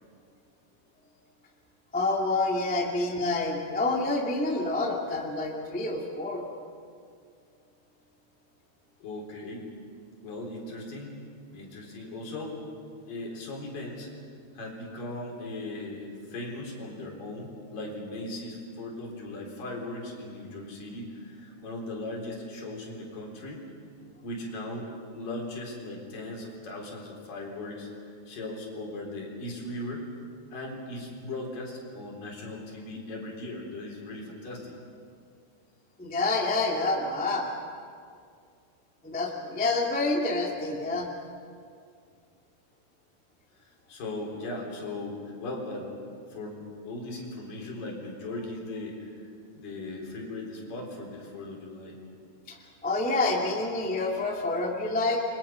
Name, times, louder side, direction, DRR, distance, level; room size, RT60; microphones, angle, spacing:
voice 1, 1.9-6.4 36.0-37.5 39.0-41.1 52.5-52.6 52.8-55.2, left 2 dB, 5° left, -1 dB, 0.7 m, -28 dB
voice 2, 9.0-9.7 10.2-11.2 11.5-12.7 13.1-14.1 14.5-23.6 24.2-30.1 30.5-34.7 43.9-45.9 46.3-49.1 49.6-52.0, left 2 dB, 50° left, -2 dB, 5.4 m, -38 dB
29.0 x 23.5 x 5.8 m, 2.2 s
omnidirectional pair, 5.0 m